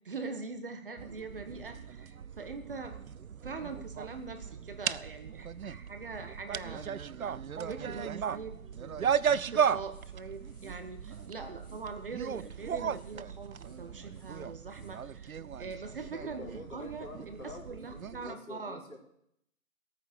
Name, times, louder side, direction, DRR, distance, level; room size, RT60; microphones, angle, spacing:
voice 1, 0.0-3.0 3.4-6.9 7.2-7.3 7.6-18.8, right 4 dB, 40° right, 7 dB, 1.4 m, -43 dB
sound 1, 1.0-18.4, right 7 dB, 75° right, 0.6 m, -36 dB
sound 2, 9.6-15.1, left 1 dB, 10° left, 2.2 m, -63 dB
voice 2, 16.1-19.0, left 2 dB, 75° left, 0 dB, 4.1 m, -47 dB
14.0 x 9.1 x 6.6 m, 0.74 s
figure-of-eight pair, 160°, 43 cm